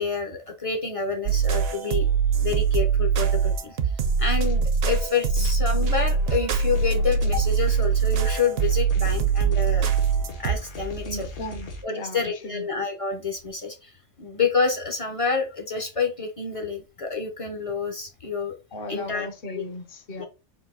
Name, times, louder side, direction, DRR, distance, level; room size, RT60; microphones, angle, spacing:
voice 1, 0.0-2.1 2.4-3.9 4.2-9.9 10.4-11.3 11.8-18.5 18.9-19.3 19.5-19.6 20.2-20.3, left 5 dB, 40° left, 0.5 m, -28 dB
sound 1, 1.3-10.6, right 6 dB, 65° right, 0.8 m, -22 dB
sound 2, 4.4-5.1 5.3-11.8, equal, 70° left, 1.3 m, -39 dB
voice 2, 11.0-12.7 18.7-20.2, left 1 dB, 55° left, 0.9 m, -36 dB
3.9 x 2.7 x 3.6 m
omnidirectional pair, 1.2 m